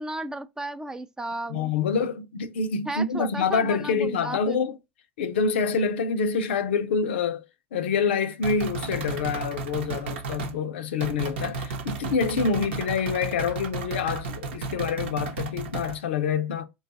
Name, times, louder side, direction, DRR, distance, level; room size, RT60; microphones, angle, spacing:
voice 1, 0.0-1.7 2.9-4.6, right 2 dB, 10° right, 0.4 m, -34 dB
voice 2, 1.5-4.8 5.2-7.4 7.7-16.6, left 5 dB, 80° left, 0.5 m, -26 dB
sound 1, 8.4-10.6 11.0-16.0, right 4 dB, 85° right, 0.9 m, -33 dB
3.8 x 2.3 x 3.9 m
hypercardioid pair, 90°, 6 cm